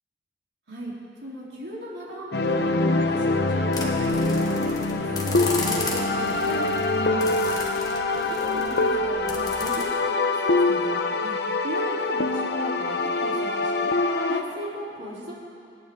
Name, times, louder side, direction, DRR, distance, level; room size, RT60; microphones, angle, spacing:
voice 1, 1.2-7.5 8.3-13.9 14.3-15.3, equal, 85° right, -6 dB, 3.7 m, -37 dB
sound 1, 2.3-14.4, left 2 dB, 70° left, 0.8 m, -24 dB
sound 2, 3.7-9.8, left 3 dB, 20° left, 1.6 m, -35 dB
26.0 x 9.7 x 3.8 m, 2.4 s
head